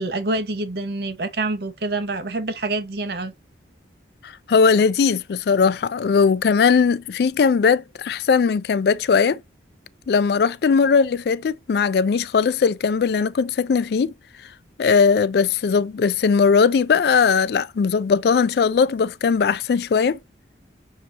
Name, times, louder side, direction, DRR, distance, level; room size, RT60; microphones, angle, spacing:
voice 1, 0.0-3.3, right 2 dB, 55° right, 0.7 m, -26 dB
voice 2, 4.2-9.4 10.1-14.1 14.8-20.2, left 5 dB, 55° left, 0.3 m, -19 dB
6.4 x 2.8 x 2.8 m
head